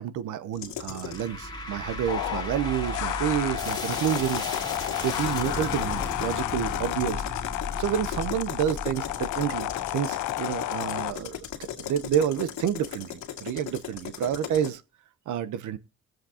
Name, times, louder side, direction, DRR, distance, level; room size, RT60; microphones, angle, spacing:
voice 1, 0.0-7.2 7.5-11.4 11.8-14.8 15.3-15.8, right 10 dB, 80° right, 0.9 m, -29 dB
sound 1, 0.5-1.3 3.5-14.7, left 9 dB, 70° left, 2.1 m, -38 dB
sound 2, 1.0-12.3, left 1 dB, 15° left, 2.2 m, -36 dB
sound 3, 2.1-11.1, left 17 dB, 90° left, 0.5 m, -32 dB
21.5 x 7.8 x 2.9 m
cardioid pair, 90°, 30 cm